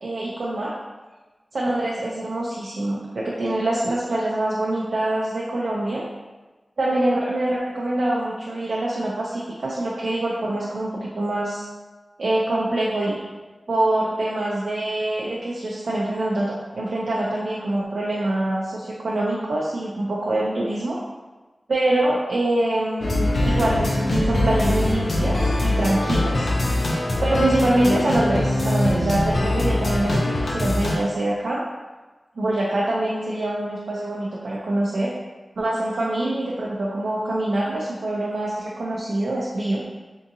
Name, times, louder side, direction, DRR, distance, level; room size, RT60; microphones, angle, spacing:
voice 1, 0.0-0.7 1.5-6.0 6.8-11.6 12.2-13.2 13.7-21.0 21.7-26.5 27.2-31.6 32.4-35.1 35.6-39.8, right 1 dB, 90° right, -5 dB, 0.4 m, -24 dB
sound 1, 23.0-31.0, left 1 dB, 75° left, 0.5 m, -22 dB
3.5 x 2.6 x 2.7 m, 1.2 s
wide cardioid pair, 90°, 0 cm